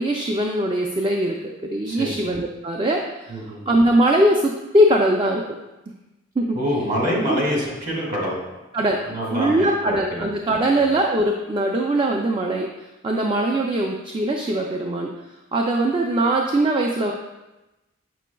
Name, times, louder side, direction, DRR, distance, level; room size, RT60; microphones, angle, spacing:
voice 1, 0.0-3.3 3.7-5.6 6.4-6.6 7.3-7.4 8.7-9.0 9.3-12.7 13.0-15.1 15.5-17.1, right 1 dB, 25° right, 1 dB, 0.4 m, -21 dB
voice 2, 3.3-3.6 6.5-8.4 9.1-10.2 10.6-10.8, equal, 45° right, -3 dB, 2.0 m, -26 dB
7.4 x 6.1 x 2.3 m, 1.0 s
head